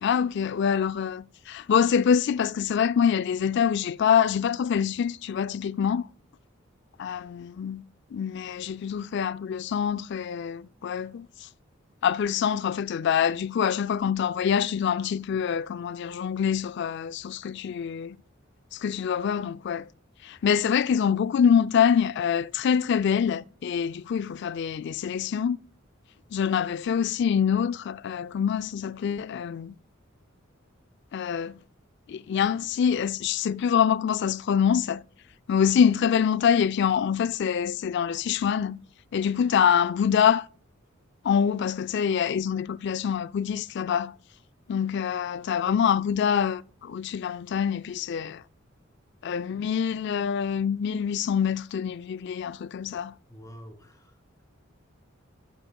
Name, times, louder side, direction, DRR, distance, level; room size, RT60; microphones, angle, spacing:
voice 1, 0.0-6.0 7.0-7.8 8.1-11.3 12.0-18.2 18.7-19.9 20.2-25.6 26.3-29.7 31.1-31.5 32.1-35.0 35.5-38.8 39.1-40.4 41.2-44.1 44.7-48.4 49.2-53.1, left 7 dB, 60° left, 0.3 m, -25 dB
voice 2, 53.3-54.4, equal, 15° left, 1.9 m, -48 dB
12.0 x 7.0 x 2.2 m
head